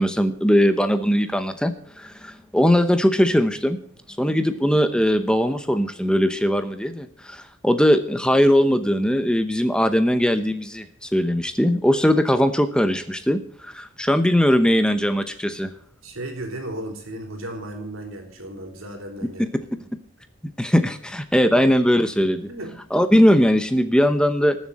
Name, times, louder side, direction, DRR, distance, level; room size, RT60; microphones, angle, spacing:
voice 1, 0.0-3.8 4.2-15.7 19.4-19.5 20.6-22.4 22.9-24.6, equal, 5° left, 9 dB, 0.8 m, -20 dB
voice 2, 16.0-19.6 22.2-22.8, right 1 dB, 85° right, 4 dB, 3.7 m, -35 dB
20.5 x 7.4 x 4.2 m, 0.62 s
head